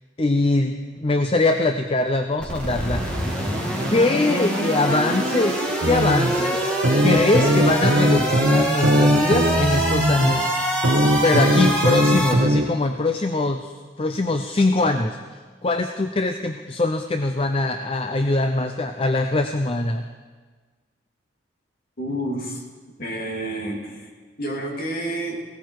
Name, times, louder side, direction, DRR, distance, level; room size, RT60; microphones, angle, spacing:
voice 1, 0.2-3.0 3.9-6.7 7.0-10.8 11.2-20.1, left 2 dB, 30° left, 7 dB, 0.6 m, -22 dB
sound 1, 2.4-12.3, right 1 dB, 5° left, 2.6 m, -25 dB
sound 2, 5.8-6.3 6.8-10.3 10.8-12.7, equal, 90° right, 1.5 m, -19 dB
voice 2, 22.0-22.6 23.0-24.1 24.4-25.4, right 1 dB, 50° left, 0 dB, 2.7 m, -29 dB
18.0 x 17.0 x 4.7 m, 1.4 s
head